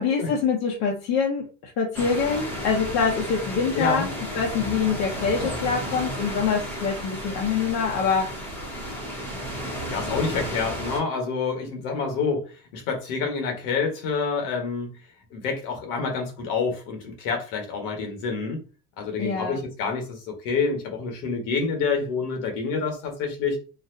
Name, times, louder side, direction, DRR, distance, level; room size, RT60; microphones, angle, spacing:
voice 1, 0.0-4.1 4.3-8.3 19.2-19.6, left 5 dB, 65° left, 0.9 m, -25 dB
sound 1, 1.9-11.0, equal, 5° left, 0.9 m, -33 dB
voice 2, 3.7-4.1 5.4-5.6 9.9-12.5 12.7-15.0 15.3-18.6 19.0-23.6, left 5 dB, 80° left, 1.4 m, -27 dB
4.1 x 2.3 x 2.6 m
cardioid pair, 145°, 36 cm